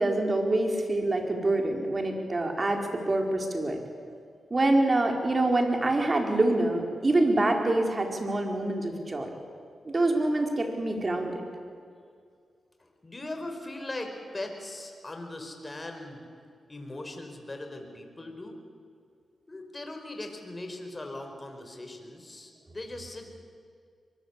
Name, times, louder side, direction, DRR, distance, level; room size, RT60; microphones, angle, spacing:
voice 1, 0.0-3.8 4.5-9.3 9.8-11.4, right 2 dB, 40° right, 3 dB, 4.6 m, -26 dB
voice 2, 12.8-16.3 16.7-18.6 19.5-23.3, left 2 dB, 30° left, 5 dB, 5.0 m, -39 dB
23.5 x 21.5 x 8.4 m, 2.2 s
cardioid pair, 55°, 0 cm